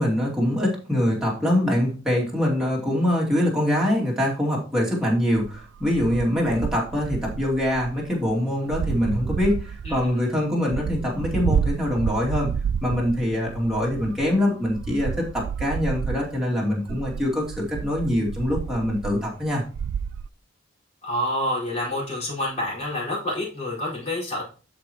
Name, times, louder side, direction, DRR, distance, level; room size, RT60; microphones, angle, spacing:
voice 1, 0.0-12.5 12.8-19.6, left 1 dB, 5° right, -4 dB, 2.4 m, -24 dB
sound 1, 5.4-8.3 8.7-10.2 10.5-14.4 14.6-16.4 16.9-20.3, right 7 dB, 80° right, 0.3 m, -30 dB
voice 2, 21.0-24.4, left 1 dB, 35° left, -6 dB, 4.7 m, -28 dB
12.5 x 5.0 x 3.0 m, 0.37 s
head